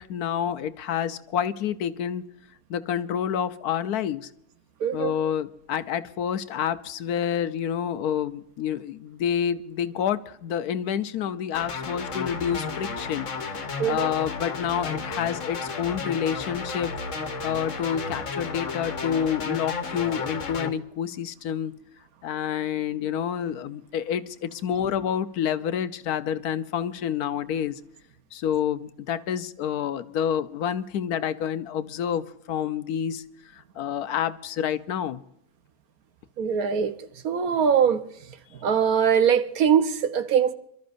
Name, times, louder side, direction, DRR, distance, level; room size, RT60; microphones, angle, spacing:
voice 1, 0.0-2.2 2.7-4.3 4.9-13.3 13.9-16.9 17.4-21.7 22.2-27.8 28.3-33.2 33.5-35.2, left 9 dB, 85° left, 1.3 m, -28 dB
voice 2, 4.8-5.1 13.8-14.1 36.4-36.9 37.2-38.0 38.6-40.5, right 7 dB, 75° right, 1.4 m, -22 dB
sound 1, 11.5-20.7, left 4 dB, 55° left, 1.6 m, -33 dB
27.0 x 13.0 x 2.6 m
omnidirectional pair, 1.6 m